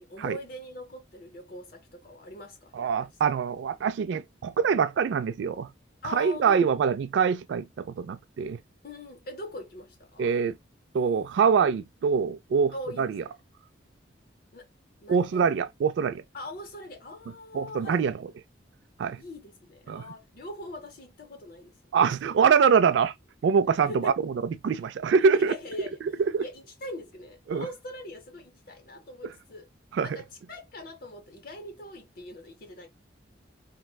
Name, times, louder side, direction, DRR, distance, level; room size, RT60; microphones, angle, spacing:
voice 1, 0.0-3.1 6.0-6.8 8.8-10.4 12.7-13.3 14.5-14.7 15.0-15.5 16.3-18.2 19.1-21.7 23.9-24.2 25.3-29.7 30.0-32.9, left 1 dB, 50° left, 0.7 m, -42 dB
voice 2, 2.7-5.7 6.1-8.6 10.2-10.5 10.9-13.2 15.1-16.2 17.5-18.1 19.0-19.2 19.9-20.1 21.9-23.1 23.4-25.5 26.3-26.4 27.5-27.7 29.2-29.3 29.9-30.1, right 6 dB, 70° right, 0.3 m, -24 dB
4.3 x 2.1 x 2.2 m
head